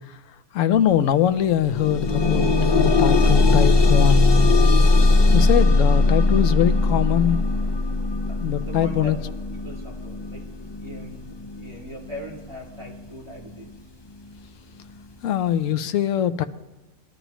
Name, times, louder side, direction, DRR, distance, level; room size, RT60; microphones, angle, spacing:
voice 1, 0.0-4.3 5.3-7.4 8.4-9.2 15.2-16.4, left 10 dB, 85° left, 11 dB, 1.0 m, -22 dB
sound 1, 0.8-0.9 1.3-12.3 13.1-13.2 13.7-13.8, left 2 dB, 35° left, 0.4 m, -19 dB
voice 2, 8.3-13.7, equal, 20° right, -4 dB, 2.5 m, -40 dB
21.0 x 12.0 x 3.0 m, 1.1 s
omnidirectional pair, 1.3 m